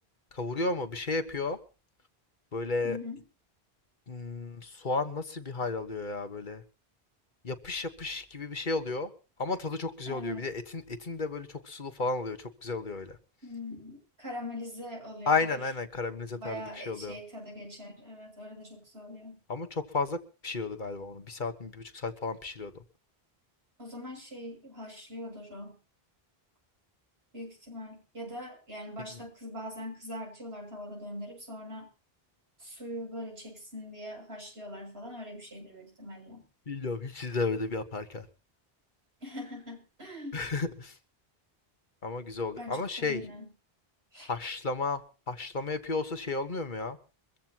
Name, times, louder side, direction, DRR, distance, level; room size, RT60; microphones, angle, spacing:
voice 1, 0.3-1.6 2.5-3.0 4.1-6.6 7.4-9.1 9.4-13.2 15.3-17.2 19.5-22.7 29.1-29.2 36.7-38.3 40.3-41.0 42.0-43.2 44.2-47.0, left 3 dB, 50° left, 9 dB, 1.5 m, -33 dB
voice 2, 2.8-3.2 10.1-10.5 13.4-15.6 16.3-19.4 23.8-25.8 27.3-31.9 32.6-36.4 39.2-40.5 42.6-43.5 44.1-44.3, left 1 dB, 80° right, 0 dB, 7.5 m, -42 dB
24.0 x 15.0 x 3.0 m, 0.34 s
omnidirectional pair, 1.0 m